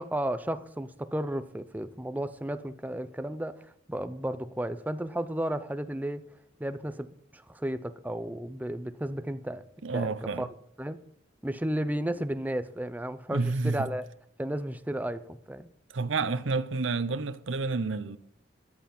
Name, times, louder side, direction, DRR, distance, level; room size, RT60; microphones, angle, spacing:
voice 1, 0.0-6.2 6.6-9.6 9.9-10.5 10.8-11.0 11.4-14.1 14.4-15.7, right 1 dB, 10° right, 0.5 m, -33 dB
voice 2, 9.8-10.5 13.3-13.9 15.9-18.2, right 3 dB, 85° right, 0.7 m, -29 dB
13.5 x 11.5 x 4.3 m
head